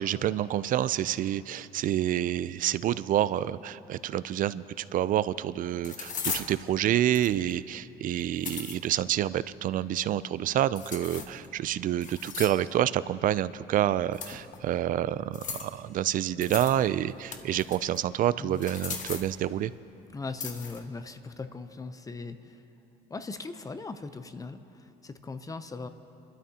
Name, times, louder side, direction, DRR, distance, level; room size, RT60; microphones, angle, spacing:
voice 1, 0.0-19.7, right 12 dB, 55° right, 17 dB, 0.4 m, -28 dB
sound 1, 4.9-5.0 5.8-6.5 7.1-7.5 8.2-8.8 10.8-11.5 12.0-12.7 14.1-14.6 15.3-15.8 16.4-16.8 17.1-18.0 18.5-19.3 20.4-20.8, left 6 dB, 50° left, 1.3 m, -37 dB
voice 2, 20.1-22.6 23.1-25.9, left 3 dB, 20° left, 10 dB, 0.7 m, -39 dB
30.0 x 12.5 x 2.9 m, 2.9 s
cardioid pair, 110°, 17 cm